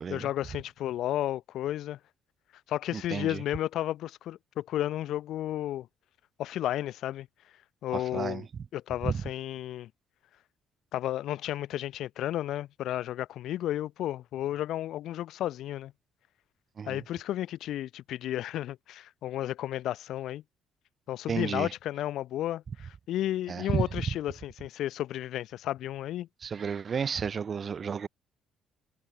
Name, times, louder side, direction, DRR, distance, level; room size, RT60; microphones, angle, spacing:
voice 1, 0.1-2.0 2.7-5.9 6.4-7.3 7.8-8.5 8.7-9.9 10.9-15.9 16.9-20.4 21.1-26.3, left 13 dB, 60° left, 0.7 m, -33 dB
voice 2, 2.9-3.4 7.9-8.4 9.0-9.1 16.8-17.0 21.3-21.7 23.5-23.8 26.4-28.1, right 6 dB, 40° right, 0.3 m, -32 dB
figure-of-eight pair, 45°, 0 cm